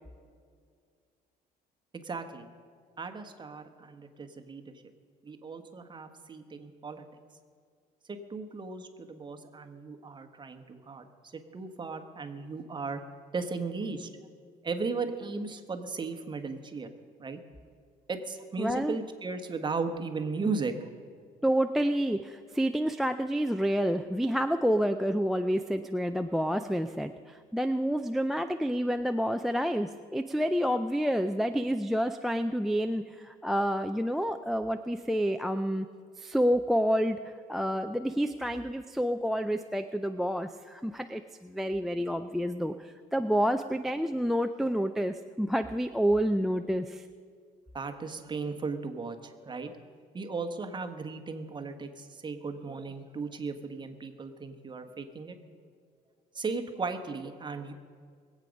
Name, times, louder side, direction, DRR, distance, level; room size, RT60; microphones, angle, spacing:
voice 1, 1.9-2.5 3.0-4.7 5.2-7.0 8.1-11.1 11.3-13.0 13.3-14.1 14.6-16.9 17.2-17.4 18.1-20.8 47.7-49.8 50.1-55.3 56.3-57.7, right 4 dB, 25° right, 6 dB, 1.3 m, -36 dB
voice 2, 18.6-19.0 21.4-35.9 36.2-47.1, equal, ahead, 10 dB, 0.4 m, -29 dB
22.0 x 8.5 x 5.2 m, 2.1 s
cardioid pair, 110°, 17 cm